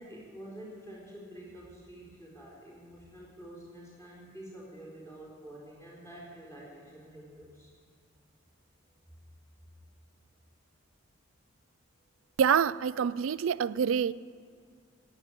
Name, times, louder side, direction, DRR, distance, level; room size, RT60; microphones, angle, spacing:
voice 1, 0.0-7.7, right 1 dB, 10° left, 4.1 m, -48 dB
voice 2, 12.4-14.1, right 7 dB, 65° right, 0.3 m, -26 dB
17.0 x 9.8 x 8.1 m
head